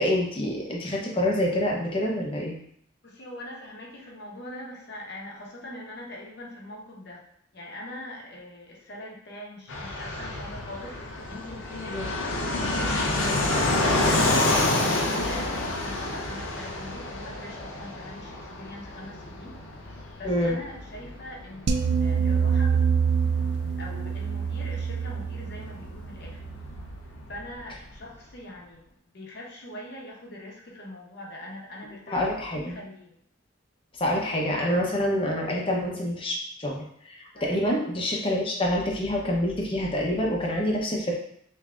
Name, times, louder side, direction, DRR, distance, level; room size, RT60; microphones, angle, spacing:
voice 1, 0.0-2.6 11.9-12.0 20.2-20.6 32.1-32.8 34.0-41.2, left 1 dB, 30° left, -1 dB, 0.7 m, -27 dB
voice 2, 3.0-7.3 7.5-11.0 11.3-13.5 14.0-19.5 20.2-23.1 23.8-26.4 27.3-28.9 29.1-33.2 37.3-37.7, left 1 dB, 55° left, -2 dB, 0.9 m, -42 dB
Fixed-wing aircraft airplane, 9.7-28.0, left 2 dB, 85° left, 0.7 m, -29 dB
sound 1, 21.7-26.9, right 6 dB, 55° right, 0.3 m, -26 dB
5.7 x 2.7 x 2.4 m, 0.68 s
head